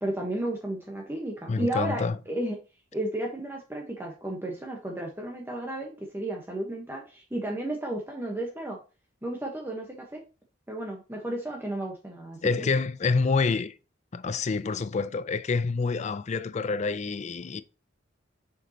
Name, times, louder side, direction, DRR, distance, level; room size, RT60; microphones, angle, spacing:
voice 1, 0.0-2.6 2.9-8.8 9.2-10.2 10.7-12.7, right 1 dB, 10° right, 1.1 m, -33 dB
voice 2, 1.5-2.2 12.4-13.7 14.1-17.6, left 4 dB, 40° left, 0.4 m, -27 dB
6.8 x 5.1 x 2.9 m
head